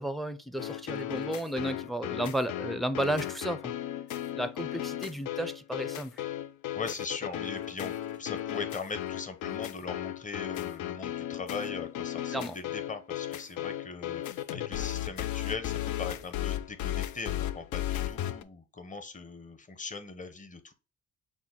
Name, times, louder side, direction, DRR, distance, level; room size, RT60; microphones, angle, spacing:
voice 1, 0.0-3.7 4.3-6.2 12.3-12.6, right 1 dB, ahead, 0.5 m, -33 dB
sound 1, 0.6-18.4, left 12 dB, 75° left, 0.5 m, -35 dB
voice 2, 6.7-7.9 8.2-20.7, left 4 dB, 25° left, 0.8 m, -40 dB
6.1 x 2.2 x 3.7 m
cardioid pair, 90°, 30 cm